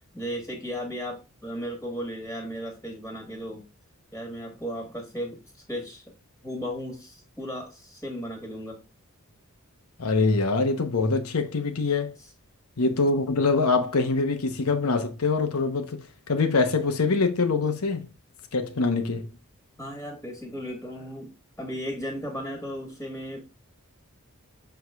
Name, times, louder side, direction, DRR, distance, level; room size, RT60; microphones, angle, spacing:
voice 1, 0.1-3.6 4.1-5.4 5.7-6.0 6.4-8.8 19.8-21.3 21.6-23.4, equal, 10° left, 1.4 m, -35 dB
voice 2, 10.0-12.1 12.8-18.0 18.5-19.3, left 3 dB, 75° left, 0.9 m, -24 dB
6.3 x 4.7 x 3.5 m
head